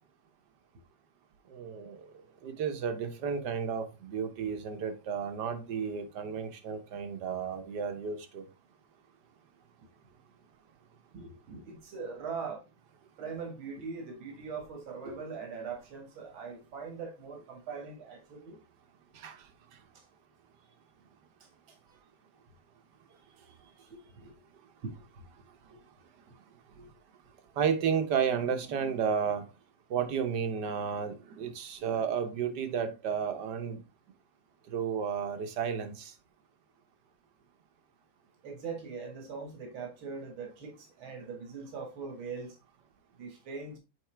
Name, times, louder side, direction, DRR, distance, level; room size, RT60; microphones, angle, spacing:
voice 1, 1.5-2.1 2.4-8.4 19.1-19.5 27.6-29.5 29.9-33.8 34.7-36.1, right 7 dB, 60° right, 1.5 m, -32 dB
voice 2, 11.1-12.6 13.2-18.6 19.9-20.0 21.4-22.0 23.4-24.4 24.8-24.9 25.6-25.8 26.7-26.9 38.4-42.6 43.2-43.8, right 5 dB, 85° right, 2.4 m, -41 dB
8.0 x 4.2 x 3.4 m
omnidirectional pair, 2.2 m